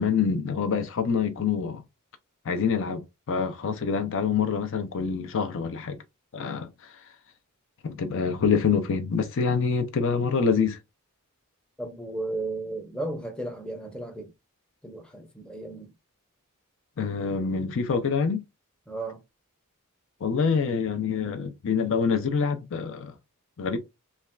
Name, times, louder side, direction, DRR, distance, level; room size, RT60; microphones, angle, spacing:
voice 1, 0.0-1.8 2.4-6.0 6.3-6.9 7.8-10.8 17.0-18.4 20.2-23.1 23.6-23.8, left 5 dB, 60° left, 0.5 m, -26 dB
voice 2, 11.8-14.3 14.8-15.9 18.9-19.2, right 2 dB, 5° left, 0.6 m, -34 dB
3.2 x 2.3 x 2.2 m
head